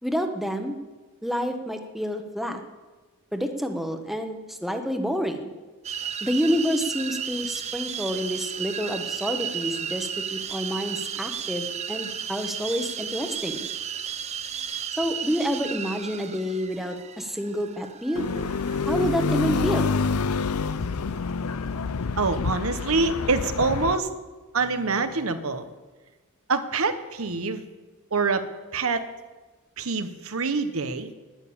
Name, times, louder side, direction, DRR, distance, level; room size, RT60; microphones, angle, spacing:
voice 1, 0.0-0.7 1.2-2.6 3.3-5.5 6.2-13.6 15.0-18.2 18.9-19.9, equal, ahead, 5 dB, 1.1 m, -28 dB
sound 1, 5.8-19.5, right 8 dB, 30° right, 0.6 m, -34 dB
sound 2, 18.2-24.0, left 4 dB, 85° left, 0.6 m, -27 dB
voice 2, 22.2-24.1 24.5-25.6 26.5-27.6 28.1-28.4 28.7-29.1 29.8-31.1, right 4 dB, 70° right, 10 dB, 1.1 m, -25 dB
11.5 x 10.5 x 8.7 m, 1.2 s
head